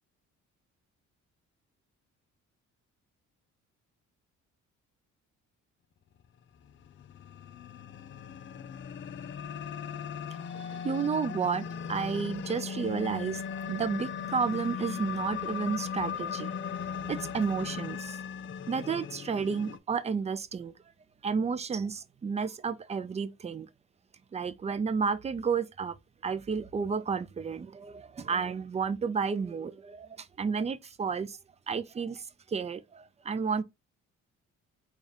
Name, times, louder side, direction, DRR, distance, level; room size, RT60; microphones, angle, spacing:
sound 1, 6.7-19.8, left 7 dB, 40° left, 0.4 m, -38 dB
voice 1, 10.3-16.6 16.9-18.2 18.7-20.7 21.2-23.7 24.3-25.9 26.2-31.4 31.7-33.6, right 5 dB, 20° right, 0.4 m, -32 dB
4.0 x 2.4 x 3.5 m
cardioid pair, 90°, 30 cm